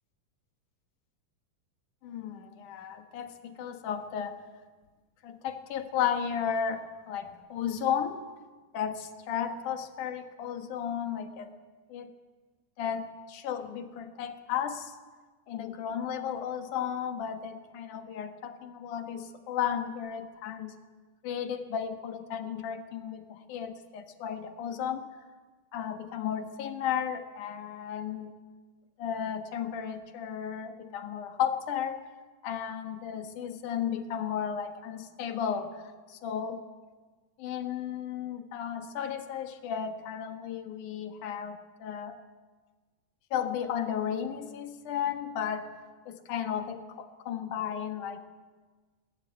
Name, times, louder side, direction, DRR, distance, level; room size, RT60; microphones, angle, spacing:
voice 1, 2.0-4.4 5.2-8.2 8.7-11.5 11.9-12.1 12.8-15.0 15.5-20.7 21.2-25.1 25.7-28.3 29.0-32.1 32.4-36.6 37.4-42.2 43.3-45.7 46.1-48.3, left 8 dB, 75° left, 7 dB, 2.8 m, -34 dB
21.0 x 16.5 x 8.9 m, 1.4 s
omnidirectional pair, 3.7 m